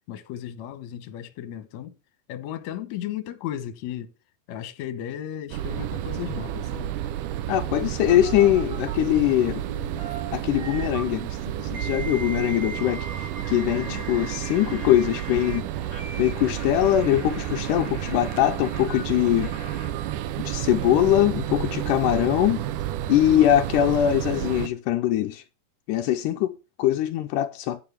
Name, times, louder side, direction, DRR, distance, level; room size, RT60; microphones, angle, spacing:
voice 1, 0.1-1.9 2.3-4.1 4.5-7.0 13.7-14.1, left 11 dB, 65° left, 1.9 m, -35 dB
sound 1, 5.5-24.7, right 12 dB, 80° right, 1.9 m, -31 dB
voice 2, 7.5-9.6 10.3-15.7 16.2-19.5 20.4-22.6 23.1-25.4 25.9-27.8, left 12 dB, 85° left, 1.8 m, -22 dB
sound 2, 8.1-9.0 9.7-11.0 11.7-15.6 15.9-19.9, right 3 dB, 45° right, 6.5 m, -39 dB
10.5 x 5.3 x 5.7 m
omnidirectional pair, 4.3 m